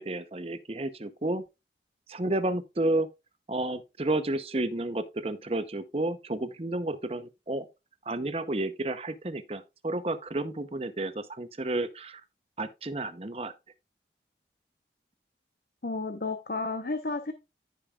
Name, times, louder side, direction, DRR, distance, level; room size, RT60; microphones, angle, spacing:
voice 1, 0.0-1.4 2.1-3.1 3.5-7.7 8.1-12.2 12.6-13.5, right 2 dB, 35° right, 0.8 m, -31 dB
voice 2, 15.8-17.3, left 3 dB, 55° left, 0.9 m, -32 dB
15.0 x 5.3 x 2.4 m
head